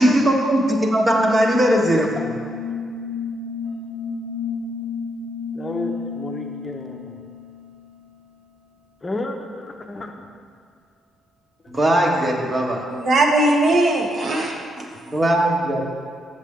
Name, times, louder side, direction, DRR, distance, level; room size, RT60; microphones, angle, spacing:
voice 1, 0.0-2.3 11.7-12.8 15.0-15.8, right 1 dB, 25° right, 1 dB, 1.1 m, -19 dB
sound 1, 1.1-8.1, left 5 dB, 80° right, 0.7 m, -31 dB
voice 2, 5.5-7.1 9.0-10.1, left 2 dB, 25° left, 4 dB, 0.7 m, -31 dB
voice 3, 12.9-15.2, right 2 dB, 55° right, 1 dB, 1.1 m, -20 dB
7.3 x 6.7 x 3.6 m, 2.1 s
cardioid pair, 90°, 0 cm